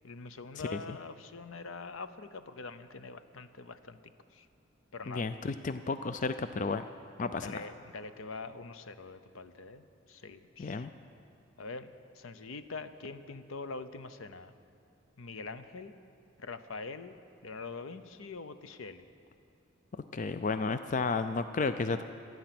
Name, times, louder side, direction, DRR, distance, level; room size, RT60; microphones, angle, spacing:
voice 1, 0.0-4.0 4.3-4.5 4.9-5.3 7.4-10.9 11.6-14.5 15.2-15.9 16.4-17.2 17.4-19.1, left 4 dB, 75° left, 11 dB, 0.7 m, -44 dB
voice 2, 5.1-6.9 7.2-7.6 10.6-10.9 19.9-22.0, left 4 dB, 40° left, 10 dB, 0.4 m, -33 dB
25.5 x 9.4 x 6.0 m, 2.6 s
head